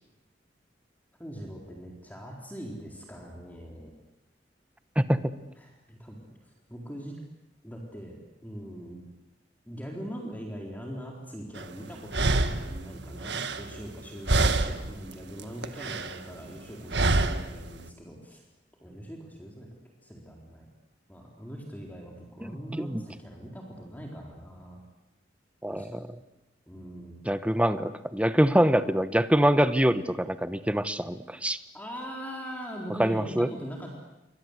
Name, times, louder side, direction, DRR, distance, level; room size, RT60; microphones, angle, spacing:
voice 1, 1.2-3.9 5.6-7.2 7.6-8.1 8.4-9.1 9.7-18.4 18.8-19.7 20.0-20.7 21.1-24.8 25.7-25.9 26.7-27.2 31.7-34.0, equal, 10° left, -1 dB, 4.0 m, -41 dB
voice 2, 5.0-5.3 22.4-22.5 22.8-23.0 25.6-26.1 27.2-31.6 33.0-33.5, equal, 5° right, 12 dB, 1.1 m, -24 dB
sound 1, 11.6-11.7 12.1-14.0 14.3-15.0 15.3-16.2 16.9-17.6, right 2 dB, 70° right, 1.6 m, -26 dB
28.5 x 24.0 x 8.2 m, 0.94 s
head